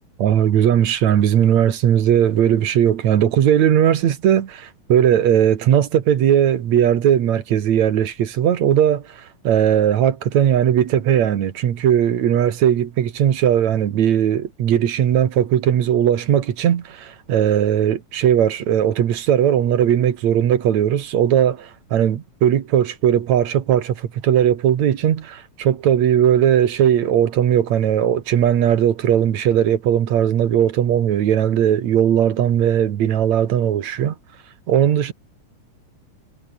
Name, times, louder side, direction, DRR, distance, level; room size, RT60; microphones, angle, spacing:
voice 1, 0.2-34.2 34.7-35.1, right 10 dB, 65° right, 2.9 m, -18 dB
omnidirectional pair, 3.6 m